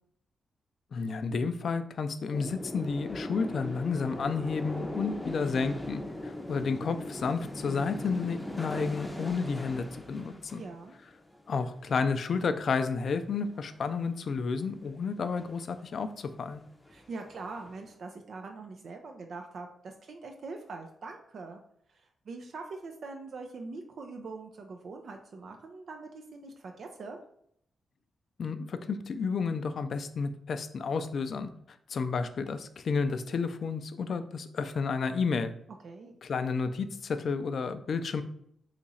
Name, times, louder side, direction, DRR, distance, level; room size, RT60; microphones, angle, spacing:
voice 1, 0.9-10.6 11.5-16.6 28.4-31.5 31.9-35.5 36.2-38.2, left 5 dB, 65° left, 10 dB, 0.3 m, -31 dB
sound 1, 2.3-11.8 12.1-12.4 12.7-13.0 13.2-14.0 14.7-14.9 15.2-15.8 16.2-16.3 16.5-17.8, left 1 dB, 10° left, 0.6 m, -40 dB
voice 2, 10.5-10.9 16.9-21.6 21.9-27.2 35.8-36.1, right 3 dB, 65° right, 3 dB, 0.4 m, -43 dB
2.9 x 2.4 x 4.0 m, 0.69 s
cardioid pair, 55°, 0 cm